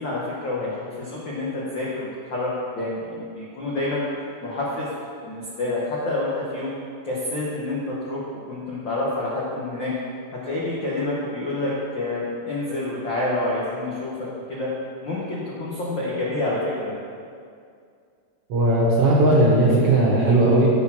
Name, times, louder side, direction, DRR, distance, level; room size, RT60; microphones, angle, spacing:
voice 1, 0.0-2.5 2.7-4.0 4.4-4.9 5.2-6.8 7.0-9.9 10.4-14.7 15.0-16.9, left 2 dB, 90° left, -6 dB, 1.0 m, -28 dB
voice 2, 18.5-20.7, right 1 dB, 65° right, -4 dB, 1.6 m, -17 dB
8.2 x 4.3 x 5.8 m, 2.3 s
omnidirectional pair, 3.7 m